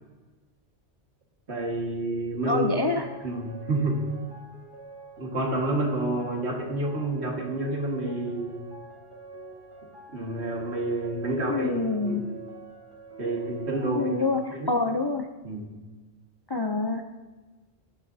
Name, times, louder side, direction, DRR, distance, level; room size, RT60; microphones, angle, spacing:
voice 1, 1.5-2.8 3.2-4.0 5.2-8.6 10.1-12.2 13.2-14.2 14.5-14.7 15.4-15.7, right 2 dB, 75° right, 0 dB, 2.1 m, -29 dB
voice 2, 2.5-3.1 11.5-12.3 13.9-15.3 16.5-17.0, left 3 dB, 35° left, 4 dB, 0.4 m, -26 dB
sound 1, 2.9-14.5, right 3 dB, 30° right, 1.8 m, -45 dB
15.5 x 11.0 x 2.7 m, 1.2 s
omnidirectional pair, 1.1 m